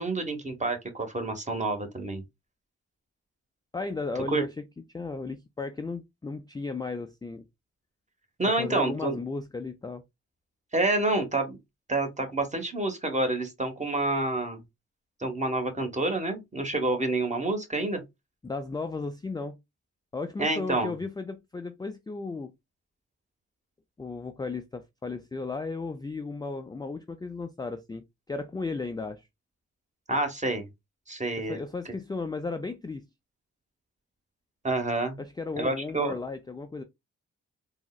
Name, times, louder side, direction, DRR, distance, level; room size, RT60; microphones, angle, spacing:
voice 1, 0.0-2.2 4.3-4.5 8.4-9.2 10.7-11.6 11.9-14.6 15.2-18.0 20.4-20.9 30.1-30.7 31.1-31.6 34.6-35.2 35.6-36.1, right 2 dB, 20° right, 1.1 m, -28 dB
voice 2, 3.7-4.5 4.9-7.4 8.6-10.0 18.4-19.6 20.1-22.5 24.0-29.2 31.5-33.0 35.2-36.8, left 3 dB, 15° left, 0.3 m, -35 dB
3.6 x 2.0 x 2.2 m
supercardioid pair, 50°, 32 cm